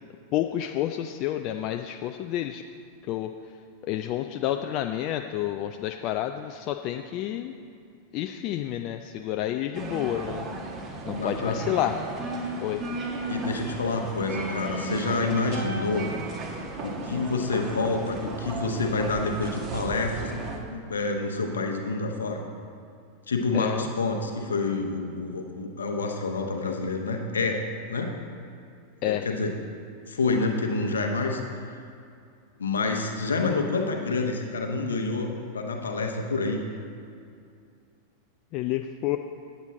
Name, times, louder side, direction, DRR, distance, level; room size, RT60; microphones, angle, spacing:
voice 1, 0.3-2.6 3.1-3.3 3.8-7.5 8.1-10.5 11.1-12.0 12.2-12.8 23.5-23.9 29.0-29.2 38.5-39.2, left 12 dB, 40° left, 6 dB, 0.3 m, -29 dB
sound 1, 9.7-20.6, right 2 dB, 30° right, 1.2 m, -35 dB
voice 2, 11.1-11.6 13.3-16.1 16.8-20.3 20.7-22.4 23.3-27.6 27.9-28.1 29.0-29.5 30.1-31.8 32.6-36.6, left 3 dB, 70° left, 3 dB, 0.9 m, -28 dB
8.8 x 8.2 x 4.1 m, 2.5 s
figure-of-eight pair, 90°, 0 cm